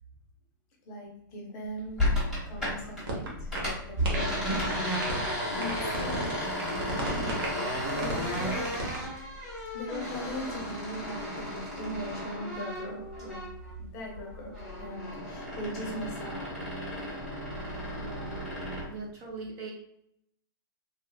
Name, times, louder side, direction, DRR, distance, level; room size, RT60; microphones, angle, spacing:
voice 1, 0.8-2.2 2.4-8.7 9.7-13.4 13.8-16.5 17.6-18.5, equal, 30° left, -1 dB, 0.8 m, -40 dB
sound 1, 2.0-3.0 3.3-13.7 14.0-18.9, left 1 dB, 5° right, 1.3 m, -33 dB
sound 2, 3.1-3.3 3.6-3.7 4.0-5.3 5.6-6.3 6.6-9.0, right 2 dB, 75° right, 1.1 m, -35 dB
voice 2, 18.9-19.7, right 4 dB, 30° right, -2 dB, 0.7 m, -40 dB
3.4 x 2.4 x 2.3 m, 0.74 s
hypercardioid pair, 160°, 12 cm